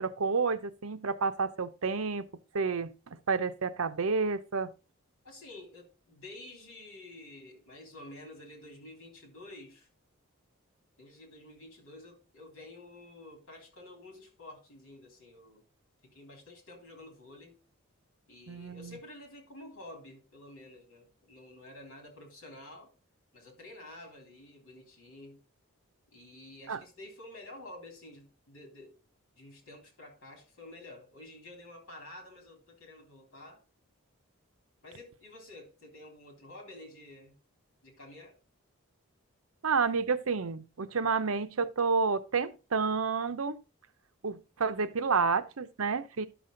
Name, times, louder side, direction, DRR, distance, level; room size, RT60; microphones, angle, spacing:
voice 1, 0.0-2.3 2.5-4.7 18.5-19.0 26.7-26.8 39.6-43.6 44.2-46.3, right 5 dB, 75° right, 0.7 m, -30 dB
voice 2, 5.2-9.9 11.0-15.6 16.0-17.6 18.3-22.9 23.3-25.4 26.1-28.9 29.4-33.6 34.8-37.4 37.8-38.4, left 1 dB, 65° left, 3.3 m, -50 dB
11.5 x 6.1 x 3.8 m
head